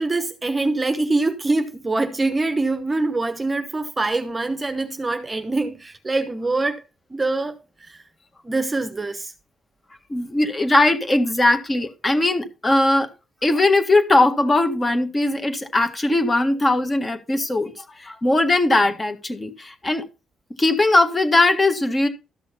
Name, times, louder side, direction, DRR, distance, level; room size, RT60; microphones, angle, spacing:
voice 1, 0.0-6.8 7.1-8.0 8.4-9.3, right 2 dB, 20° right, 0.9 m, -24 dB
voice 2, 10.1-13.1 13.4-20.0 20.6-22.1, left 2 dB, 25° left, 1.7 m, -19 dB
13.0 x 6.3 x 4.2 m
cardioid pair, 90°, 0 cm